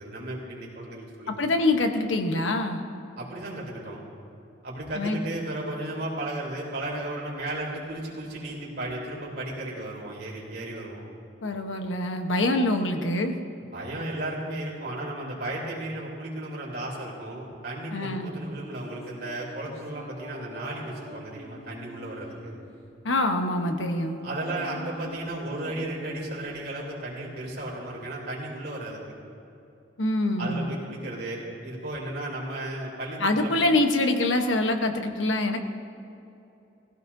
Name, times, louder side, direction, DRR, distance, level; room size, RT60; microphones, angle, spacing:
voice 1, 0.0-1.3 3.2-4.0 4.6-11.0 13.7-22.6 24.2-29.0 30.4-33.5, right 1 dB, 55° right, -4 dB, 3.3 m, -34 dB
voice 2, 1.3-2.8 5.0-5.2 11.4-13.3 17.9-18.3 23.0-24.2 30.0-30.8 33.2-35.6, left 2 dB, 85° left, 5 dB, 1.1 m, -25 dB
sound 1, 18.2-22.5 23.1-26.5, equal, 35° left, 1.6 m, -46 dB
18.5 x 16.0 x 2.7 m, 2.7 s
head